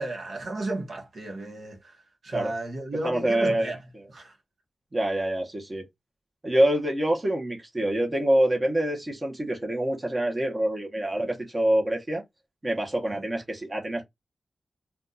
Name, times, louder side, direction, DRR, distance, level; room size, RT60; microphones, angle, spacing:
voice 1, 0.0-3.8 4.1-4.3 11.1-11.3 13.1-13.2, right 2 dB, 65° right, 1.0 m, -34 dB
voice 2, 3.0-4.0 4.9-5.9 6.4-12.2 12.6-14.0, right 1 dB, 25° right, 0.9 m, -26 dB
2.6 x 2.3 x 3.8 m
wide cardioid pair, 145°, 0 cm